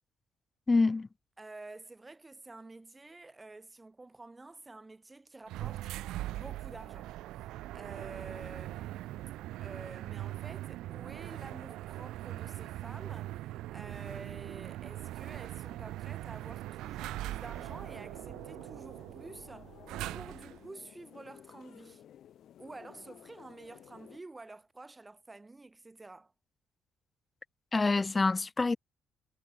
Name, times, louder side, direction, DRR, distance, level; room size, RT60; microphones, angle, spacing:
voice 1, 0.7-1.1 27.7-28.8, left 3 dB, 20° left, 1.0 m, -26 dB
voice 2, 1.4-5.9 6.3-7.1 7.7-13.3 13.7-19.8 20.1-22.1 22.6-26.3, right 2 dB, 15° right, 3.3 m, -49 dB
sound 1, 5.5-20.6, right 15 dB, 90° right, 1.3 m, -41 dB
sound 2, 17.6-24.2, left 10 dB, 65° left, 4.7 m, -55 dB
cardioid pair, 105°, 0 cm